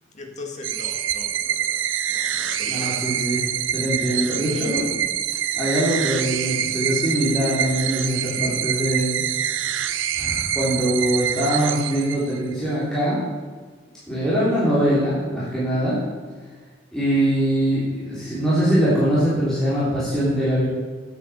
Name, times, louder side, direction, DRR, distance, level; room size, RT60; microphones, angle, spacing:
voice 1, 0.1-2.9, left 3 dB, 40° left, 1 dB, 2.0 m, -40 dB
sound 1, 0.6-12.5, right 10 dB, 85° right, 0.6 m, -26 dB
voice 2, 2.6-3.4 3.7-5.0 5.6-9.2 9.5-9.7 10.1-13.2 14.1-16.0 16.9-20.6, equal, 5° left, -11 dB, 3.4 m, -22 dB
9.7 x 8.1 x 7.0 m, 1.5 s
head